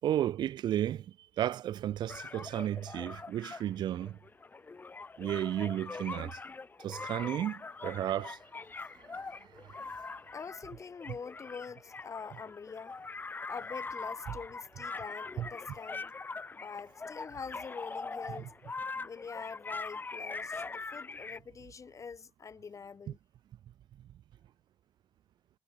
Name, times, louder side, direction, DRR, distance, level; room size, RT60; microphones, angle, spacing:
voice 1, 0.0-1.1 1.4-4.2 5.2-6.4 6.8-8.4 9.1-9.2 9.6-9.9 15.4-15.5, right 11 dB, 60° right, 0.5 m, -33 dB
sound 1, 2.1-21.4, left 4 dB, 25° left, 0.6 m, -42 dB
voice 2, 10.3-13.0 13.5-16.1 16.5-18.5 19.0-23.2, left 5 dB, 40° left, 2.8 m, -45 dB
supercardioid pair, 75°, 8 cm